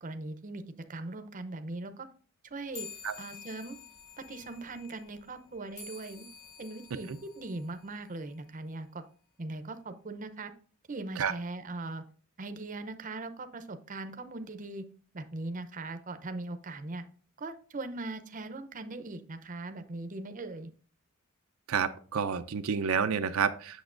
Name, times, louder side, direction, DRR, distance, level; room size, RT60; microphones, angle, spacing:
voice 1, 0.0-0.6 0.9-2.1 2.4-2.9 3.2-3.8 4.2-6.3 6.6-9.0 9.4-10.5 10.9-12.0 12.4-14.8 15.1-17.0 17.4-20.7, right 2 dB, 40° right, 8 dB, 0.6 m, -40 dB
sound 1, 2.7-8.6, left 6 dB, 45° left, 3.1 m, -50 dB
voice 2, 21.7-23.8, right 6 dB, 75° right, 8 dB, 0.5 m, -29 dB
8.2 x 6.7 x 2.5 m, 0.42 s
head